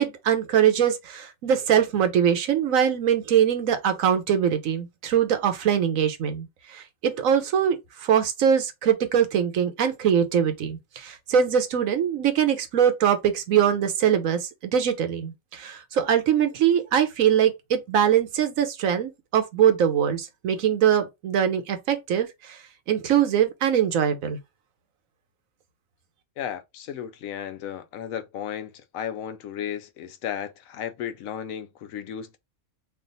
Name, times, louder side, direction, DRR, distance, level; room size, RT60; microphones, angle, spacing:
voice 1, 0.0-22.6 22.9-24.4, right 8 dB, 75° right, 1.2 m, -22 dB
voice 2, 26.4-32.4, left 9 dB, 80° left, 1.0 m, -34 dB
3.3 x 2.5 x 3.8 m
omnidirectional pair, 1.4 m